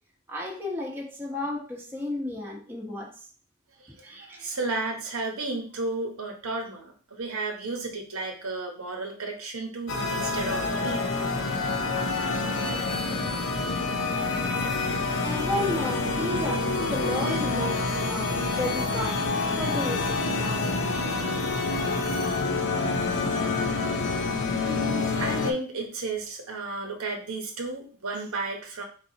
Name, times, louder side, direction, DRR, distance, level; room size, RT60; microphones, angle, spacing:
voice 1, 0.3-3.3 3.9-4.5 15.2-20.8 24.5-24.9, left 1 dB, 10° right, -3 dB, 0.9 m, -33 dB
voice 2, 3.8-11.1 24.6-28.8, right 2 dB, 65° right, 2 dB, 1.0 m, -33 dB
sound 1, 9.9-25.5, left 3 dB, 55° left, 0.6 m, -27 dB
4.0 x 4.0 x 2.8 m, 0.41 s
head